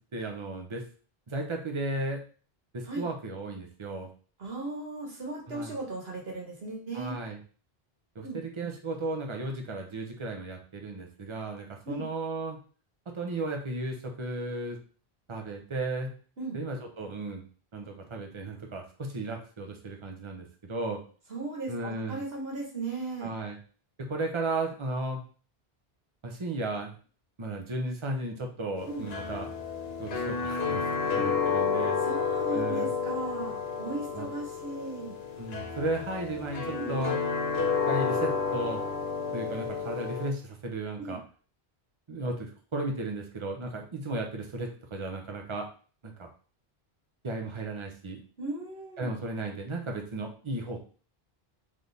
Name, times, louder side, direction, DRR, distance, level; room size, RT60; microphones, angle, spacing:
voice 1, 0.1-0.8 1.3-2.2 2.7-4.1 5.5-5.8 6.9-7.4 8.1-12.6 13.1-14.8 15.3-16.1 16.5-17.4 17.7-21.0 21.7-22.2 23.2-23.6 24.0-25.2 26.2-26.9 27.4-29.5 30.0-32.0 32.5-32.9 34.1-34.3 35.4-37.2 37.9-38.8 39.3-41.2 42.1-45.7 46.0-46.3 47.2-48.2 49.0-50.8, right 2 dB, 30° right, 3 dB, 0.8 m, -35 dB
voice 2, 4.4-7.1 8.2-8.7 11.9-12.1 16.4-16.6 21.3-23.3 28.9-29.1 31.0-31.1 32.0-35.1 36.7-36.9 41.0-41.2 48.4-49.1, right 3 dB, 70° right, 0 dB, 1.6 m, -37 dB
sound 1, 28.8-40.3, left 5 dB, 75° left, 1.1 m, -31 dB
3.7 x 3.2 x 4.0 m, 0.39 s
omnidirectional pair, 1.0 m